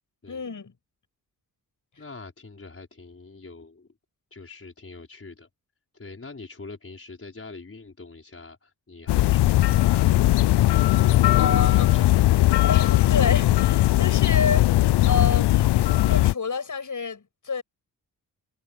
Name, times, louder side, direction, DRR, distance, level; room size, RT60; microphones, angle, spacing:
voice 1, 0.3-0.7 11.0-11.9 12.6-15.6 16.1-17.6, left 5 dB, 50° left, 7.8 m, -29 dB
voice 2, 2.0-3.9 4.3-5.5 5.9-10.4 11.2-12.4, left 3 dB, 35° left, 5.4 m, -43 dB
sound 1, 9.1-16.3, left 16 dB, 90° left, 0.6 m, -19 dB
cardioid pair, 60°, 39 cm